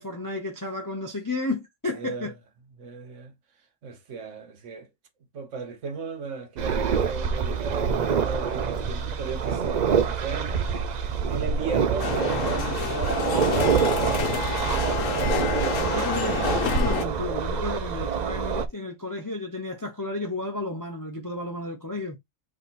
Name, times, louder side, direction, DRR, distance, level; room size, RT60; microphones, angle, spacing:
voice 1, 0.0-2.3 15.0-15.3 15.8-22.2, left 2 dB, 25° left, 0.5 m, -32 dB
voice 2, 1.9-2.3 2.8-3.3 3.8-4.9 5.3-10.8 11.2-16.3, right 5 dB, 60° right, 1.2 m, -37 dB
sound 1, 6.6-18.7, right 6 dB, 85° right, 0.3 m, -26 dB
sound 2, 12.0-17.0, left 6 dB, 65° left, 1.1 m, -28 dB
3.5 x 3.0 x 4.1 m
omnidirectional pair, 1.5 m